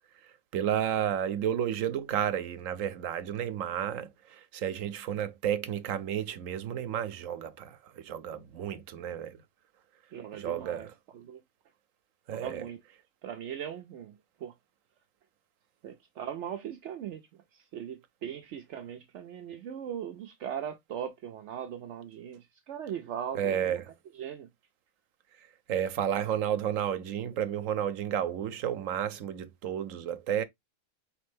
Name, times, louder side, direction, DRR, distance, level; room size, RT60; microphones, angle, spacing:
voice 1, 0.5-4.1 4.5-7.5 8.1-9.3 10.4-10.8 12.3-12.5 23.4-23.8 25.7-30.4, right 9 dB, 90° right, 1.1 m, -31 dB
voice 2, 10.1-11.4 12.3-12.8 13.2-14.5 15.8-24.5, right 9 dB, 70° right, 0.9 m, -40 dB
4.2 x 3.3 x 3.3 m
omnidirectional pair, 1.3 m